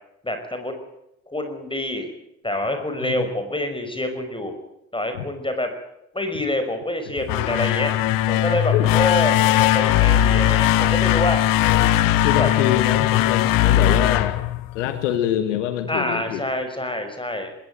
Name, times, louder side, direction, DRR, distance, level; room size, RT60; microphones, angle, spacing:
voice 1, 0.2-0.8 1.3-2.1 2.4-4.5 4.9-5.7 6.1-8.0 8.3-11.4 12.4-12.5 15.9-17.6, left 1 dB, 15° left, 7 dB, 5.6 m, -26 dB
sound 1, 7.2-15.1, left 13 dB, 70° left, 1.1 m, -19 dB
voice 2, 11.6-14.4 14.7-16.4, left 10 dB, 85° left, 10 dB, 1.4 m, -25 dB
20.0 x 17.5 x 9.1 m, 0.84 s
hypercardioid pair, 45°, 35 cm